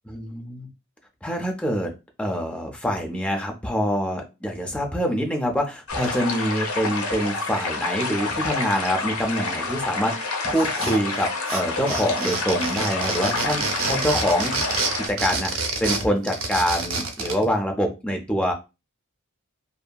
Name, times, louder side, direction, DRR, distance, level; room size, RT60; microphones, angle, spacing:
voice 1, 0.1-0.7 1.2-1.9 2.2-14.7 15.1-18.5, equal, 5° left, 2 dB, 0.5 m, -25 dB
sound 1, 5.9-15.1, left 3 dB, 80° left, 0.6 m, -28 dB
sound 2, 10.6-11.2 11.5-17.4, right 3 dB, 70° right, 0.6 m, -28 dB
2.7 x 2.6 x 2.2 m, 0.27 s
head